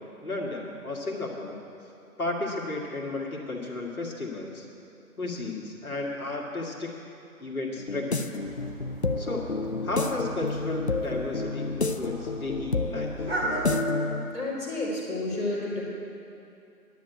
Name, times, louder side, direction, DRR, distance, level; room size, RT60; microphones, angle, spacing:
voice 1, 0.2-1.6 2.2-4.7 5.2-6.9 7.4-8.3 9.2-9.5 9.8-13.1, left 2 dB, 70° left, -2 dB, 1.9 m, -33 dB
sound 1, 7.8-14.3, left 3 dB, 50° left, 0.5 m, -30 dB
sound 2, 8.4-13.8, right 1 dB, 40° right, 2.2 m, -37 dB
voice 2, 14.3-15.8, left 2 dB, 10° left, -12 dB, 2.5 m, -30 dB
10.5 x 9.0 x 8.0 m, 2.7 s
figure-of-eight pair, 165°, 45 cm